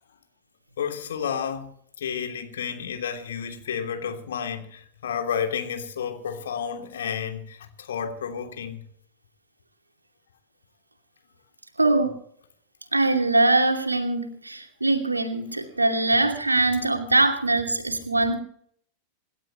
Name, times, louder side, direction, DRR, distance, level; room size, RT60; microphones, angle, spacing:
voice 1, 0.8-1.7 2.0-8.8, left 7 dB, 65° left, 3.0 m, -31 dB
voice 2, 11.8-12.1 12.9-18.4, right 2 dB, 80° right, 2.6 m, -22 dB
27.0 x 12.5 x 3.1 m
figure-of-eight pair, 90°, 0 cm